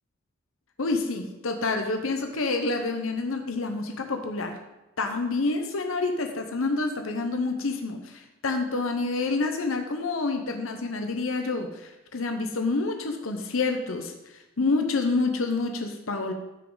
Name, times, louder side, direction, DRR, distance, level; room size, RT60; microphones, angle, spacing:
voice 1, 0.8-4.5 5.0-16.3, left 3 dB, 90° left, 5 dB, 1.0 m, -28 dB
14.5 x 6.1 x 3.9 m, 1.0 s
head